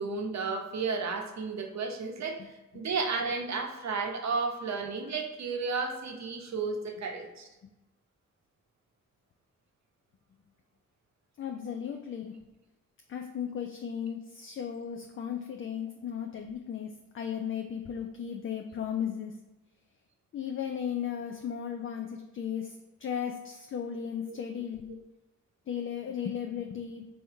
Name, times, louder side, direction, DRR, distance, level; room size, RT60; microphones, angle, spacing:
voice 1, 0.0-7.5 24.3-24.5, right 4 dB, 55° right, 3 dB, 0.8 m, -33 dB
voice 2, 11.4-12.4 13.1-19.4 20.3-24.9 25.7-27.1, left 8 dB, 40° left, 4 dB, 0.4 m, -36 dB
3.4 x 2.7 x 4.4 m, 1.0 s
supercardioid pair, 50°, 34 cm